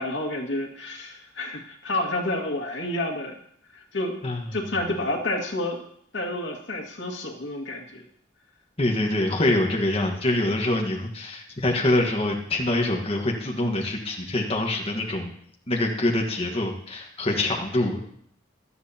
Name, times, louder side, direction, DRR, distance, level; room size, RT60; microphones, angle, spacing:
voice 1, 0.0-3.3 3.7-4.2 4.5-5.8 6.1-8.0, left 1 dB, 80° left, 2 dB, 2.0 m, -29 dB
voice 2, 8.8-15.3 15.7-18.0, left 1 dB, 30° left, 0 dB, 1.5 m, -25 dB
17.0 x 12.5 x 2.9 m, 0.66 s
head